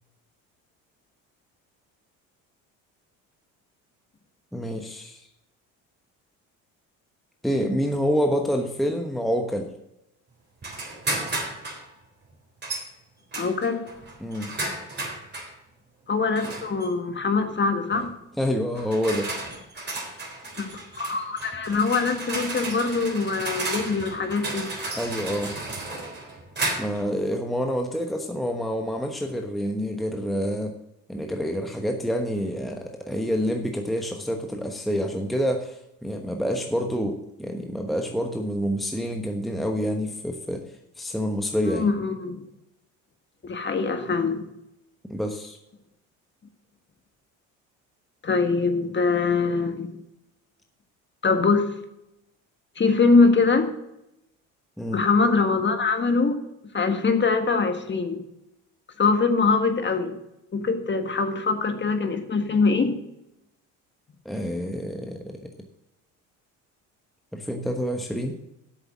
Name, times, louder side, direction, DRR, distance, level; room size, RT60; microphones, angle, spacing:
voice 1, 4.5-5.2 7.4-9.7 14.2-14.5 18.4-19.3 20.1-20.2 25.0-25.6 26.8-30.7 31.1-40.6 41.0-41.9 45.1-45.6 54.8-55.0 64.2-65.4 67.3-68.4, equal, ahead, 4 dB, 1.1 m, -27 dB
sound 1, 10.6-11.8 12.6-12.9 13.3-15.5 16.4-16.9 17.9-18.1 18.7-27.1, right 2 dB, 25° right, 3.6 m, -33 dB
voice 2, 13.4-13.8 16.1-18.1 20.6-20.7 21.0-24.7 41.7-42.4 43.4-44.4 48.2-49.9 51.2-51.7 52.8-53.7 54.9-56.4 56.7-58.2 59.0-60.1 60.5-62.9, left 4 dB, 30° left, 6 dB, 1.7 m, -23 dB
8.3 x 6.8 x 7.3 m, 0.86 s
supercardioid pair, 75°, 38 cm